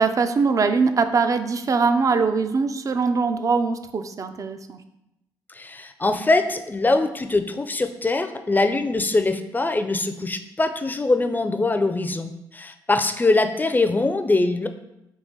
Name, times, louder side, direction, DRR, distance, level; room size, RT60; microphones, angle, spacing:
voice 1, 0.0-4.8, right 4 dB, 40° right, 9 dB, 0.4 m, -22 dB
voice 2, 5.5-14.7, left 2 dB, 20° left, 8 dB, 0.4 m, -22 dB
3.9 x 2.8 x 3.7 m, 0.87 s
supercardioid pair, 55°, 9 cm